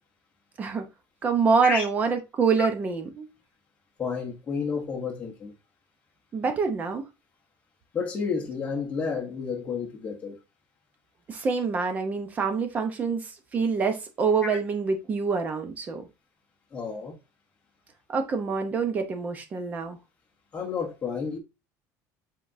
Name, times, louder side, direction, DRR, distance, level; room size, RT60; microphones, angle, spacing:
voice 1, 1.2-3.3 6.3-7.1 11.3-16.1 18.1-20.0, right 5 dB, 20° right, 0.7 m, -26 dB
voice 2, 4.0-5.5 7.9-10.4 16.7-17.1 20.5-21.4, left 5 dB, 20° left, 1.0 m, -31 dB
5.1 x 3.7 x 2.6 m
cardioid pair, 175°, 7 cm